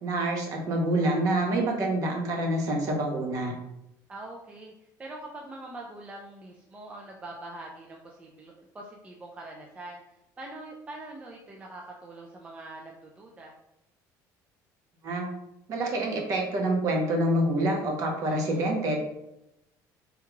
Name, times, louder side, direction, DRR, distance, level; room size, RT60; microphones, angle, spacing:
voice 1, 0.0-3.5 15.0-15.3 15.7-19.0, right 1 dB, 45° right, 1 dB, 0.8 m, -27 dB
voice 2, 4.1-4.7 5.0-10.0 10.4-13.5 18.2-18.6, right 2 dB, 15° right, -1 dB, 0.3 m, -43 dB
3.6 x 2.3 x 3.0 m, 0.86 s
cardioid pair, 165°, 7 cm